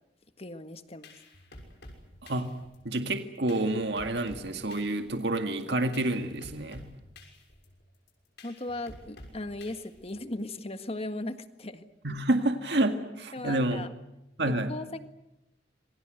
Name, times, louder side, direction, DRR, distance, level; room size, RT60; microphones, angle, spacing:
voice 1, 0.4-1.1 8.4-11.9 13.3-13.9 14.5-15.0, left 2 dB, 35° left, 9 dB, 1.7 m, -37 dB
sound 1, 0.7-10.4, left 1 dB, 65° left, 6.2 m, -51 dB
voice 2, 2.8-6.9 12.0-13.9 14.4-14.7, right 1 dB, 65° right, 6 dB, 2.0 m, -28 dB
27.0 x 23.5 x 8.0 m, 0.91 s
head